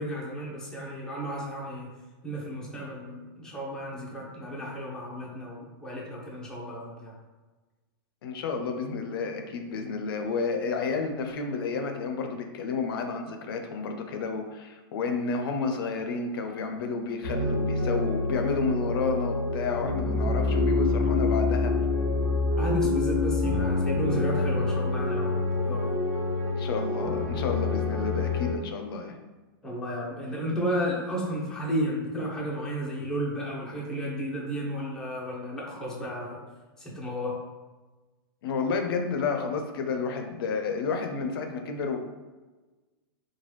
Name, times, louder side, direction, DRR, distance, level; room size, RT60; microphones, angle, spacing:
voice 1, 0.0-1.9 2.2-7.1 22.6-25.4 25.6-25.9 29.6-36.4 36.8-37.4, equal, 5° left, -4 dB, 0.5 m, -33 dB
voice 2, 8.2-21.8 26.5-29.2 38.4-42.0, left 4 dB, 70° left, 5 dB, 0.4 m, -31 dB
sound 1, 17.2-28.5, left 3 dB, 40° right, 1.1 m, -26 dB
3.1 x 2.2 x 3.0 m, 1.2 s
supercardioid pair, 155°, 13 cm